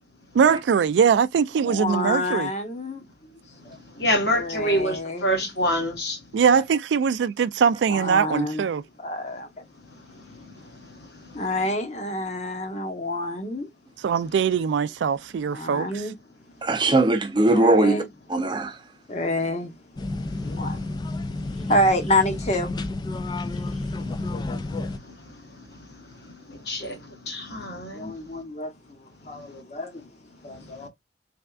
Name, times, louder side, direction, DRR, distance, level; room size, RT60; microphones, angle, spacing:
voice 1, 0.4-2.5 6.3-8.8 14.0-16.0, right 7 dB, 85° right, 0.3 m, -22 dB
voice 2, 1.6-3.4 4.3-5.4 7.9-8.7 9.0-9.6 11.3-13.7 15.5-16.1 17.5-18.1 19.1-19.7 20.6-20.8 21.7-22.7 27.9-30.0 30.4-30.9, left 1 dB, 40° left, 0.9 m, -28 dB
voice 3, 3.5-6.4 9.9-11.5 20.3-20.9 21.4-21.6 23.4-23.7 23.9-28.4 29.3-29.5 30.5-30.9, equal, 65° left, 1.3 m, -30 dB
voice 4, 16.6-18.0 18.3-18.8, right 2 dB, 25° right, 0.5 m, -21 dB
sound 1, 20.0-25.0, left 2 dB, 25° left, 0.3 m, -30 dB
3.5 x 3.3 x 2.3 m
head